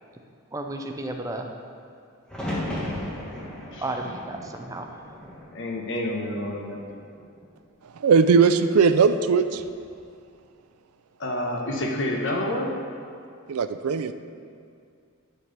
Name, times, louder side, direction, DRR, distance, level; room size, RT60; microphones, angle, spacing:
voice 1, 0.5-1.5 3.8-4.9, right 2 dB, 15° right, 3 dB, 0.5 m, -32 dB
sound 1, 2.3-6.3 6.7-7.5 9.3-9.8, left 1 dB, 5° left, 1.4 m, -36 dB
voice 2, 5.5-6.9 11.2-12.7, left 1 dB, 60° left, 1 dB, 1.2 m, -28 dB
voice 3, 8.0-9.6 13.5-14.1, right 5 dB, 85° right, 11 dB, 0.4 m, -19 dB
10.5 x 4.6 x 6.7 m, 2.3 s
head